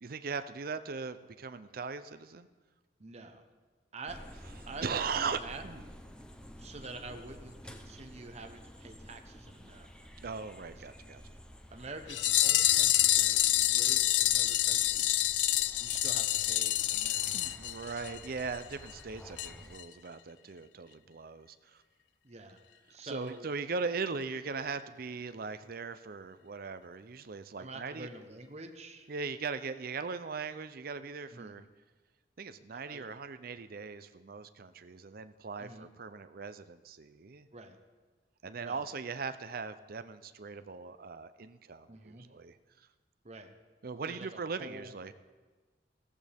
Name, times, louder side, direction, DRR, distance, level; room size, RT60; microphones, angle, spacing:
voice 1, 0.0-2.5 4.8-5.8 10.2-11.2 17.2-21.8 23.0-28.1 29.1-31.6 32.4-37.5 38.4-42.6 43.8-45.1, right 5 dB, 55° right, 12 dB, 0.6 m, -39 dB
voice 2, 3.0-3.4 3.9-4.2 4.7-5.6 6.6-9.9 10.7-10.8 11.7-15.1 15.7-17.6 22.2-22.6 22.9-23.5 27.6-29.1 31.3-31.5 32.7-33.1 35.6-35.9 37.5-37.8 38.6-38.8 41.9-42.3 43.2-43.5 44.1-44.9, right 2 dB, 40° right, 6 dB, 1.0 m, -47 dB
sound 1, 4.1-19.8, equal, 5° left, 0.7 m, -51 dB
sound 2, 12.1-18.3 18.5-18.6 18.9-19.0 19.4-19.5 19.8-19.9, left 14 dB, 80° left, 0.4 m, -27 dB
15.5 x 14.0 x 3.5 m, 1.3 s
head